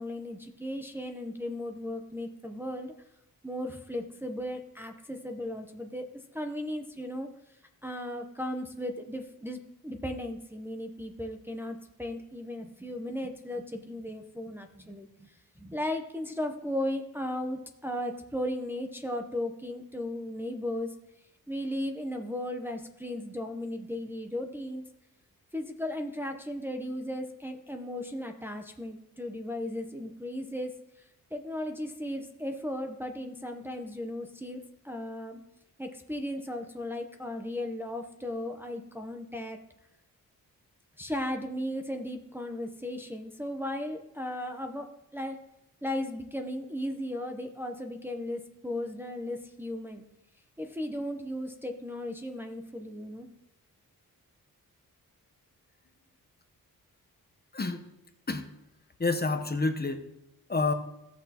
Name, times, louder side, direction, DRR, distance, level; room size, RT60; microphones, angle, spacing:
voice 1, 0.0-2.9 3.4-6.0 6.3-7.3 7.8-21.0 21.5-24.8 25.5-30.8 31.3-34.6 34.8-35.4 35.8-39.6 41.0-44.9 45.1-45.4 45.8-50.0 50.6-53.3, left 1 dB, 5° right, 3 dB, 0.7 m, -36 dB
voice 2, 59.0-60.0 60.5-60.7, left 3 dB, 25° left, 7 dB, 0.8 m, -28 dB
16.5 x 6.0 x 2.9 m, 0.87 s
wide cardioid pair, 95°, 36 cm